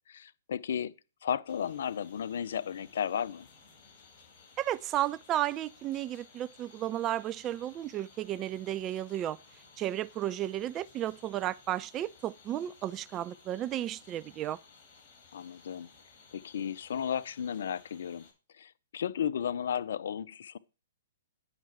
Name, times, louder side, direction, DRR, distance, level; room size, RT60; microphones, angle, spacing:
voice 1, 0.1-0.9 1.2-3.5 15.3-15.9 16.3-18.3 18.5-20.6, left 8 dB, 60° left, 0.5 m, -34 dB
sound 1, 1.5-18.3, left 4 dB, 35° left, 5.1 m, -58 dB
voice 2, 4.6-9.4 9.8-14.6, right 12 dB, 25° right, 0.4 m, -33 dB
9.1 x 5.7 x 4.7 m
figure-of-eight pair, 120°, 0 cm